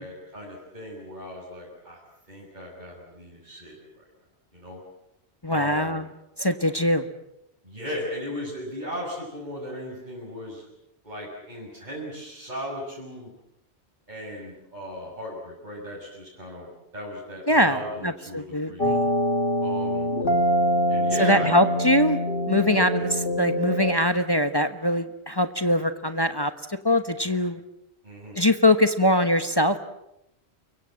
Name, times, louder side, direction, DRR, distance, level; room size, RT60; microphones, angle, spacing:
voice 1, 0.0-2.0 2.3-4.0 4.5-4.8 5.5-6.0 7.6-10.6 11.0-13.3 14.1-16.7 16.9-18.9 19.6-20.1 20.9-21.6 22.7-22.9 28.0-28.4, equal, 40° right, -4 dB, 6.8 m, -36 dB
voice 2, 5.4-6.0 6.4-7.1 17.5-19.1 21.2-22.2 22.5-23.1 23.4-27.6 28.4-29.8, left 1 dB, 20° left, 9 dB, 1.2 m, -22 dB
sound 1, 18.8-23.9, equal, 55° left, 3.3 m, -24 dB
29.5 x 23.5 x 7.7 m, 0.85 s
omnidirectional pair, 1.1 m